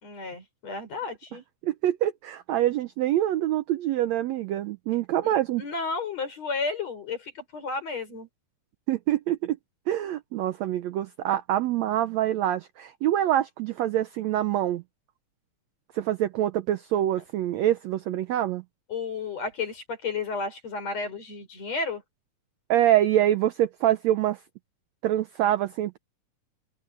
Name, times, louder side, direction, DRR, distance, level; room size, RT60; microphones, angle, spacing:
voice 1, 0.0-1.4 5.6-8.3 18.9-22.0, left 4 dB, 50° left, 6.7 m, -32 dB
voice 2, 1.6-5.6 8.9-9.6 9.9-14.8 15.9-18.6 22.7-24.4 25.0-26.0, right 12 dB, 75° right, 1.6 m, -25 dB
open air
omnidirectional pair, 3.8 m